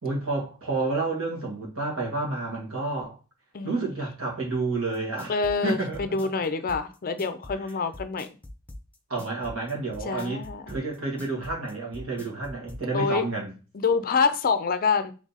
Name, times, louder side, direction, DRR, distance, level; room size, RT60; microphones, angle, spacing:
voice 1, 0.0-3.2 3.6-5.4 5.6-6.1 7.5-7.6 9.1-13.5, right 3 dB, 70° right, 1.8 m, -30 dB
voice 2, 3.5-3.9 5.3-8.3 10.1-10.6 12.9-13.3 13.7-15.1, left 5 dB, 40° left, 0.5 m, -26 dB
sound 1, 4.9-12.8, left 1 dB, 5° left, 0.7 m, -42 dB
3.7 x 3.3 x 4.0 m
head